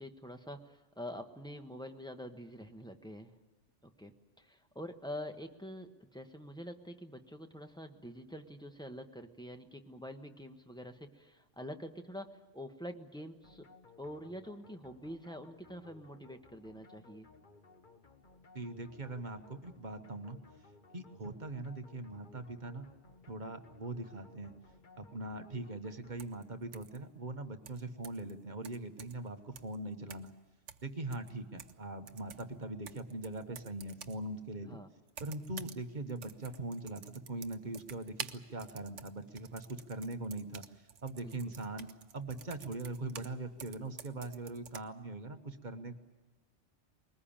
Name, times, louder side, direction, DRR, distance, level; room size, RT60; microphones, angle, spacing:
voice 1, 0.0-3.3 3.8-13.7 14.0-17.3 34.6-34.9 41.2-41.5, equal, 5° left, 5 dB, 1.2 m, -46 dB
sound 1, 13.4-26.7, left 4 dB, 45° left, 1.4 m, -60 dB
voice 2, 18.5-20.4 20.9-22.9 23.3-24.5 25.0-30.3 30.8-34.8 35.2-40.6 41.0-45.9, right 2 dB, 40° right, 7 dB, 1.4 m, -41 dB
sound 2, 26.2-26.4 26.7-27.0 27.7-28.3 28.6-29.3 29.6-29.8 30.1-30.4 30.7-31.8 32.1-34.2 35.1-35.8 36.1-43.3 43.6-44.8, right 7 dB, 80° right, 1.2 m, -50 dB
22.0 x 19.5 x 8.8 m, 1.2 s
omnidirectional pair, 1.2 m